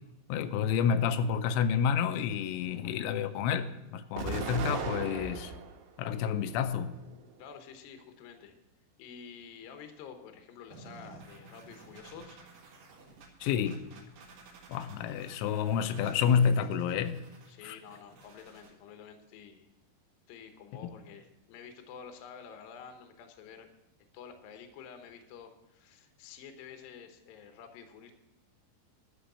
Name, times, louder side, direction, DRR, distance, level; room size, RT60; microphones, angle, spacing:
voice 1, 0.3-5.5 6.0-6.9 13.4-13.8 14.7-17.2 17.6-17.8, left 7 dB, 85° left, 9 dB, 3.0 m, -29 dB
Explosion, 4.2-5.8 6.3-7.2, right 5 dB, 80° right, 3.5 m, -37 dB
voice 2, 7.4-8.5 9.0-12.4 17.5-19.7 20.3-23.7 24.1-28.1, left 7 dB, 70° left, 6 dB, 2.3 m, -49 dB
sound 1, 10.7-18.7, right 3 dB, 60° right, 2.9 m, -54 dB
11.5 x 6.2 x 6.8 m, 0.95 s
omnidirectional pair, 5.4 m